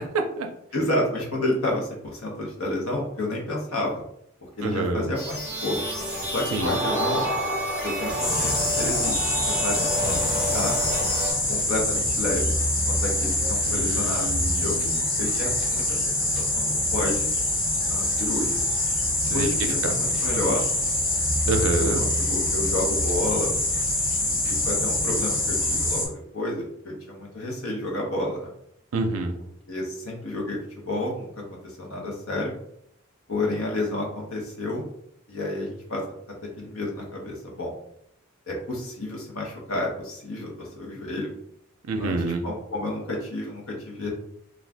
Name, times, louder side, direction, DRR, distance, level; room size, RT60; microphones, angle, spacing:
voice 1, 0.1-0.5 4.6-5.1 6.5-6.8 13.6-15.0 19.2-19.5 19.8-20.0 21.5-22.0 28.9-29.4 41.8-42.4, right 3 dB, 80° right, 5 dB, 0.4 m, -27 dB
voice 2, 0.7-4.0 4.6-5.8 6.3-7.3 7.8-9.3 9.6-10.8 11.5-12.4 12.8-14.3 14.6-14.7 15.2-17.2 17.9-18.6 19.3-20.6 21.8-23.5 24.5-28.5 29.7-32.5 33.3-34.8 35.3-36.0 36.6-37.7 38.5-41.3 42.0-44.1, left 1 dB, 75° left, -1 dB, 0.9 m, -30 dB
sound 1, 5.1-11.3, equal, 5° right, 0.7 m, -29 dB
sound 2, 8.2-26.1, left 1 dB, 40° left, 1.0 m, -25 dB
2.5 x 2.3 x 3.3 m, 0.73 s
head